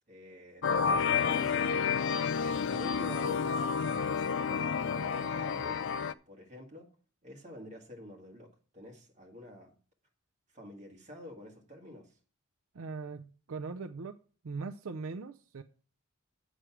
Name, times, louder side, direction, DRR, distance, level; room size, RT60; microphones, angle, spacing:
voice 1, 0.1-2.1 2.6-3.7 4.0-5.9 6.3-6.9 7.2-9.7 10.5-12.1, left 1 dB, 35° right, 1.9 m, -48 dB
sound 1, 0.6-6.1, left 6 dB, 55° left, 0.4 m, -30 dB
voice 2, 12.7-14.2 14.4-15.6, right 4 dB, 75° right, 0.5 m, -40 dB
8.0 x 6.2 x 6.0 m
head